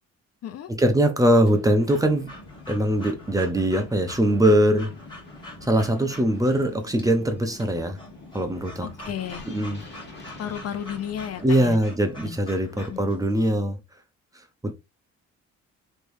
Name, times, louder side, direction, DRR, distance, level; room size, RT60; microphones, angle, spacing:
voice 1, 0.7-2.3 2.7-5.0 5.6-8.0 8.3-8.9 9.5-9.8 11.4-13.8 14.6-14.7, right 1 dB, 10° right, 0.7 m, -22 dB
Breathing / Dog, 1.4-13.5, left 1 dB, 15° left, 1.4 m, -46 dB
sound 1, 1.8-11.7, left 2 dB, 35° left, 1.5 m, -45 dB
voice 2, 8.8-9.4 10.4-11.8 12.2-12.4 12.9-13.0, left 9 dB, 55° left, 0.5 m, -33 dB
3.3 x 3.1 x 2.6 m
cardioid pair, 90°, 30 cm